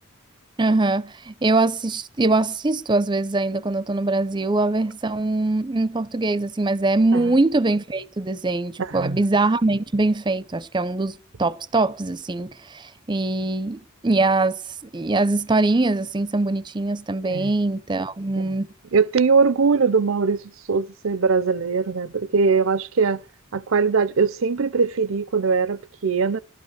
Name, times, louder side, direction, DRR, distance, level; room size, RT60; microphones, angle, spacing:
voice 1, 0.6-14.6 14.9-18.7, right 2 dB, 20° right, 0.6 m, -22 dB
voice 2, 8.8-9.2 17.2-17.5 18.3-18.5 18.9-20.4 20.7-23.2 23.5-26.4, right 5 dB, 75° right, 0.6 m, -21 dB
12.5 x 12.0 x 6.4 m
head